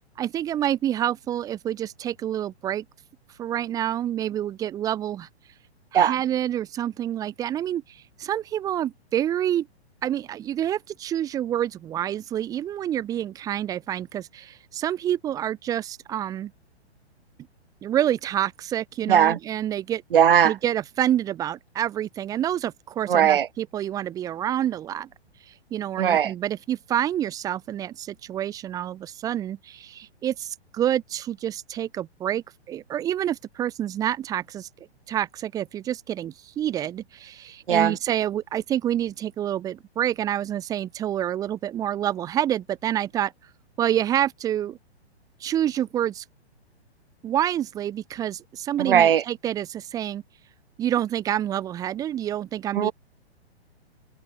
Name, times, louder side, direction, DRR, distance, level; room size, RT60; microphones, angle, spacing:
voice 1, 0.2-2.8 3.4-5.3 5.9-9.7 10.0-16.5 17.8-20.0 20.4-25.1 25.5-34.7 35.1-43.3 43.8-44.8 45.4-46.2 47.2-50.2 50.8-52.9, right 11 dB, 10° right, 0.7 m, -28 dB
voice 2, 19.1-19.4 20.1-20.5 23.1-23.5 26.0-26.3 37.7-38.0 48.8-49.2 52.7-52.9, right 9 dB, 55° right, 1.0 m, -18 dB
figure-of-eight pair, 115°, 33 cm